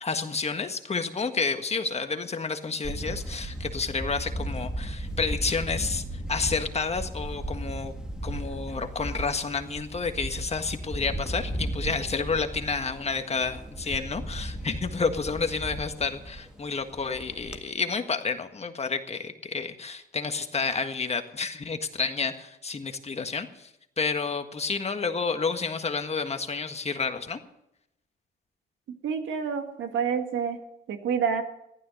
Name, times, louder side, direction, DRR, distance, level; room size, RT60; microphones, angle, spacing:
voice 1, 0.0-6.0 6.3-7.9 8.2-23.7 24.0-27.4, left 4 dB, 30° left, 7 dB, 1.6 m, -30 dB
Camera, 2.8-17.6, right 1 dB, 5° right, 1.7 m, -35 dB
voice 2, 29.0-30.6 30.9-31.4, right 6 dB, 75° right, 6 dB, 2.1 m, -28 dB
15.0 x 12.0 x 6.6 m, 0.82 s
cardioid pair, 90°, 20 cm